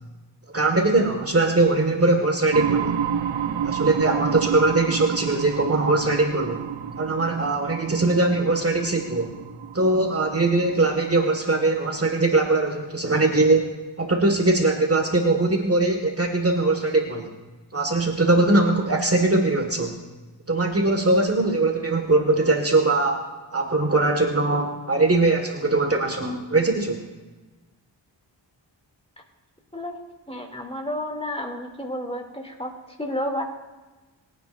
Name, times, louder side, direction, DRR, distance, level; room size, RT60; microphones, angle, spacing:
voice 1, 0.5-3.0 3.6-6.6 7.0-9.3 9.7-13.7 14.0-17.3 17.7-20.0 20.5-23.3 23.5-27.0, right 2 dB, 30° right, 3 dB, 1.8 m, -21 dB
sound 1, 2.5-12.1, right 8 dB, 80° right, 1.0 m, -30 dB
voice 2, 30.3-33.4, left 1 dB, 15° left, 2 dB, 2.7 m, -31 dB
23.0 x 9.5 x 2.6 m, 1.2 s
cardioid pair, 45°, 45 cm